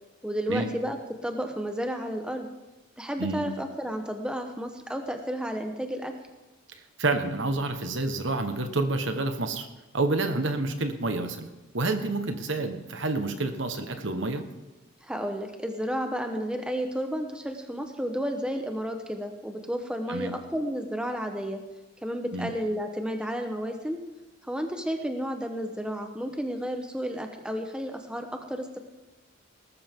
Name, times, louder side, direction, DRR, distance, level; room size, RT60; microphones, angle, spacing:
voice 1, 0.2-1.0 1.2-2.5 3.0-6.1 15.0-21.6 22.0-24.0 24.5-28.8, equal, 5° right, 5 dB, 1.0 m, -32 dB
voice 2, 7.0-9.7 9.9-11.5 11.7-14.4 20.1-20.3 22.3-22.5, right 2 dB, 60° right, 7 dB, 1.3 m, -28 dB
18.5 x 13.5 x 3.7 m, 1.1 s
head